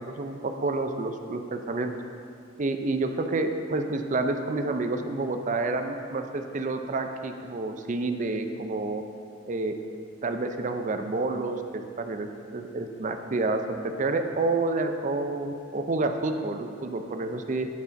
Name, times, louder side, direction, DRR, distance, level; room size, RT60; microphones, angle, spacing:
voice 1, 0.0-1.9 2.6-9.0 9.5-9.7 10.2-17.7, right 3 dB, 40° right, 6 dB, 0.5 m, -29 dB
10.5 x 4.2 x 5.2 m, 2.4 s
head